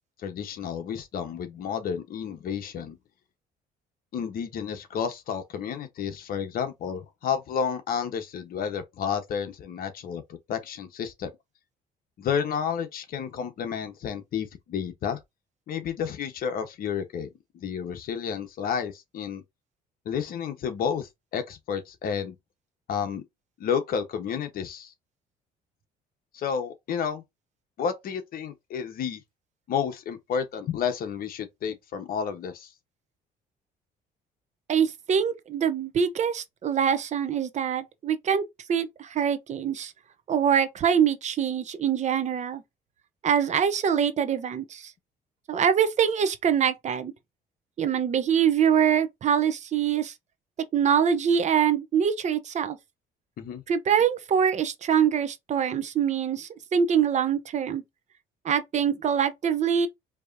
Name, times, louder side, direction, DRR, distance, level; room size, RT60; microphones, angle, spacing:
voice 1, 0.2-3.0 4.1-11.3 12.2-15.2 15.7-19.4 20.0-22.3 22.9-23.2 23.6-24.9 26.3-27.2 27.8-29.2 29.7-32.7 53.4-53.6, left 7 dB, 60° left, 1.2 m, -31 dB
voice 2, 34.7-38.4 38.7-39.9 40.3-42.6 43.2-44.9 45.5-47.1 47.8-50.1 50.7-52.8 53.7-57.8 58.4-59.9, right 8 dB, 45° right, 0.8 m, -24 dB
4.6 x 3.0 x 2.7 m
cardioid pair, 110°, 17 cm